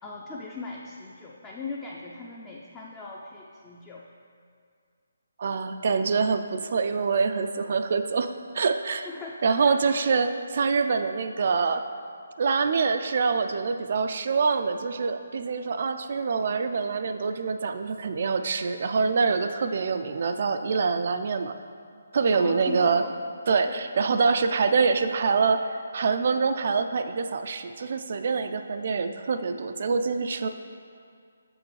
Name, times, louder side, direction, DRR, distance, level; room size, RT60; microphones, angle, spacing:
voice 1, 0.0-4.0 9.0-10.0 22.3-23.1 23.7-23.9, left 3 dB, 15° left, -3 dB, 0.5 m, -39 dB
voice 2, 5.4-9.1 9.4-11.8 12.4-21.5 22.1-23.0 23.5-25.6 25.9-30.5, right 5 dB, 50° right, 8 dB, 0.3 m, -25 dB
7.2 x 6.1 x 3.2 m, 2.2 s
figure-of-eight pair, 150°, 0 cm